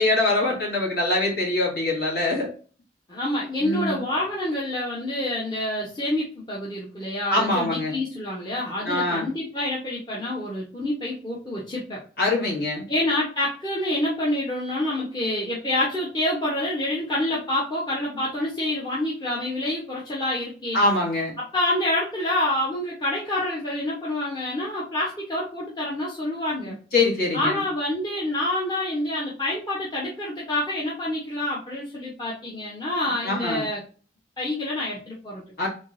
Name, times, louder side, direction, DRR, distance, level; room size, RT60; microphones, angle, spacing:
voice 1, 0.0-2.5 3.6-4.0 7.3-7.9 8.8-9.3 12.2-12.8 20.7-21.3 26.9-27.6 33.2-33.7 35.6-35.7, left 2 dB, 55° left, -4 dB, 2.0 m, -23 dB
voice 2, 3.1-12.0 12.9-20.8 21.5-26.8 27.3-33.8 34.4-35.4, left 1 dB, 25° left, -6 dB, 0.9 m, -27 dB
3.6 x 3.6 x 2.6 m, 0.38 s
head